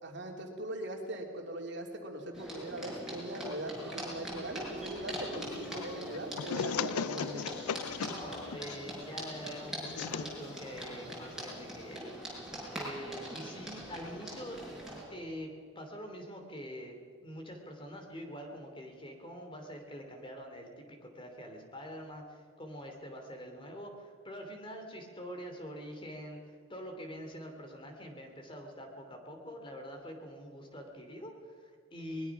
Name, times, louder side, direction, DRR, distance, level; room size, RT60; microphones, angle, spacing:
voice 1, 0.0-7.5, right 1 dB, 50° right, 1 dB, 2.9 m, -40 dB
sound 1, 2.3-15.0, right 1 dB, ahead, 6.3 m, -42 dB
sound 2, 5.3-12.0, left 7 dB, 90° left, 0.4 m, -39 dB
voice 2, 8.0-12.1 12.4-14.6 15.1-32.3, equal, 25° left, 3 dB, 2.9 m, -45 dB
23.0 x 21.0 x 6.0 m, 2.2 s
head